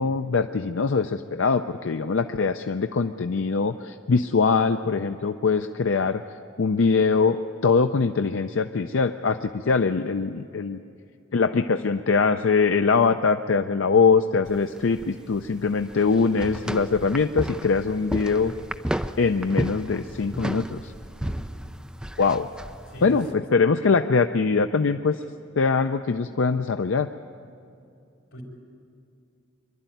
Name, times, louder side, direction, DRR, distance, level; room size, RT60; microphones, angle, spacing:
voice 1, 0.0-7.4 7.6-10.8 11.3-18.5 19.2-20.9 22.2-22.5 23.0-25.2 25.6-27.1, left 4 dB, 65° left, 8 dB, 0.5 m, -22 dB
sound 1, 14.5-23.3, equal, 5° right, 0.4 m, -33 dB
voice 2, 21.2-21.6 22.9-23.4 28.3-28.4, equal, 90° left, 1 dB, 3.9 m, -40 dB
24.0 x 11.5 x 9.2 m, 2.5 s
head